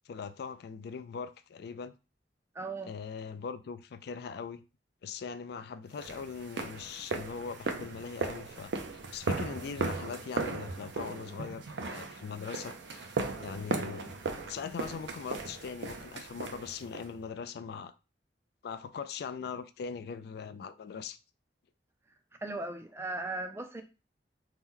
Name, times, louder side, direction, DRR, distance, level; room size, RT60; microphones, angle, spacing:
voice 1, 0.1-1.9 2.8-4.6 5.0-8.7 9.1-14.2 14.5-17.9 18.6-21.2, left 6 dB, 60° left, 0.3 m, -41 dB
voice 2, 2.5-2.9 22.4-23.8, right 2 dB, 15° right, 0.4 m, -37 dB
sound 1, 6.0-17.1, right 3 dB, 85° right, 0.5 m, -37 dB
2.8 x 2.1 x 3.6 m
head